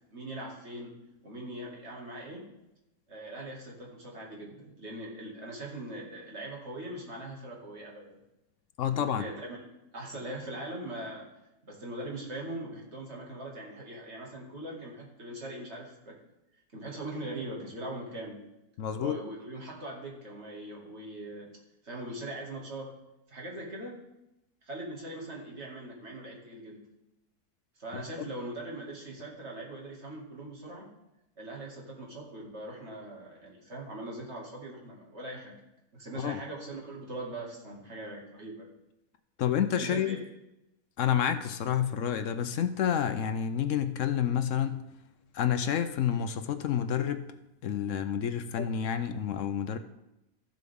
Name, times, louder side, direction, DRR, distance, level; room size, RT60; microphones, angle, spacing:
voice 1, 0.1-0.9 1.2-2.4 3.1-8.2 8.9-9.6 9.9-11.3 11.6-16.2 16.7-18.4 19.0-21.5 21.8-22.9 23.3-24.0 24.6-26.8 27.8-30.9 31.4-35.5 35.9-38.7 39.8-40.2, right 1 dB, 45° right, -2 dB, 2.4 m, -41 dB
voice 2, 8.8-9.2 18.8-19.2 27.9-28.0 36.2-36.4 39.4-40.2 41.0-44.8 45.3-47.3 47.6-49.8, left 9 dB, 65° left, 10 dB, 0.8 m, -29 dB
14.0 x 7.6 x 3.6 m, 0.91 s
omnidirectional pair, 1.7 m